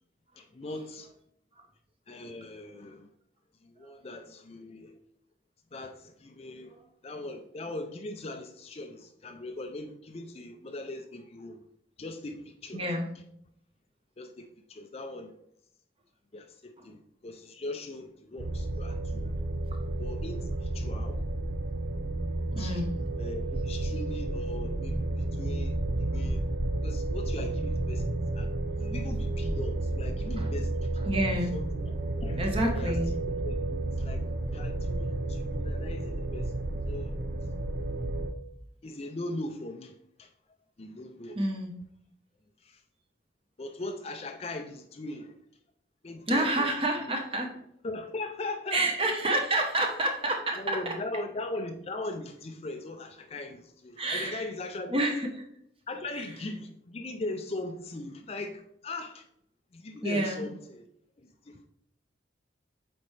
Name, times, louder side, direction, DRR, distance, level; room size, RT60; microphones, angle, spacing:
voice 1, 0.4-1.1 2.1-3.1 3.6-5.0 5.7-6.7 7.0-11.6 12.0-12.8 14.2-15.3 16.3-19.3 20.0-21.2 22.6-22.8 23.2-25.0 25.3-25.7 26.1-26.4 26.8-28.1 28.4-28.5 28.8-30.9 31.5-31.9 32.2-32.4 32.8-32.9 33.5-33.6 34.0-34.2 34.5-37.1 38.8-39.9 40.2-40.3 40.8-41.4 42.6-42.8 43.6-45.3 46.0-46.7 47.8-49.2 50.6-55.0 55.9-59.2 59.7-60.9 61.5-61.7, left 2 dB, 30° left, 0.4 m, -39 dB
voice 2, 12.7-13.1 16.8-16.9 22.5-22.9 30.4-30.5 31.0-31.5 32.4-33.1 41.3-41.7 46.3-47.5 48.7-50.9 54.0-54.5 54.9-55.4 56.1-56.3 60.0-60.5, right 1 dB, 30° right, 1.0 m, -29 dB
sound 1, 18.4-38.3, right 2 dB, 55° right, 0.6 m, -31 dB
8.2 x 4.3 x 3.3 m
head